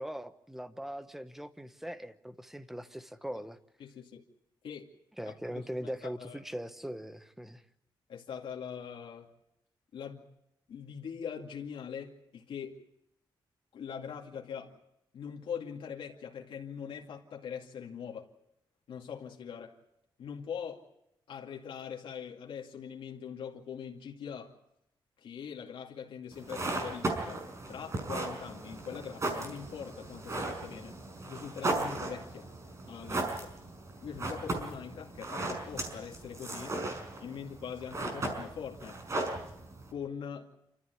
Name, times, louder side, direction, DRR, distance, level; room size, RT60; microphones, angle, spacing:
voice 1, 0.0-3.6 5.2-7.6, equal, 5° right, 11 dB, 1.1 m, -40 dB
voice 2, 3.8-4.3 4.6-4.9 5.3-6.4 8.1-9.3 9.9-10.2 10.7-12.8 13.7-14.8 15.1-18.3 18.9-19.8 20.2-20.9 21.3-24.5 25.2-27.4 27.7-31.0 31.3-32.5 32.9-33.6 34.0-36.7 37.2-39.0 39.9-40.5, left 7 dB, 80° left, 0 dB, 2.4 m, -42 dB
sound 1, 26.3-39.9, right 2 dB, 35° right, 5.5 m, -37 dB
28.0 x 14.5 x 9.4 m, 0.83 s
wide cardioid pair, 150°, 9 cm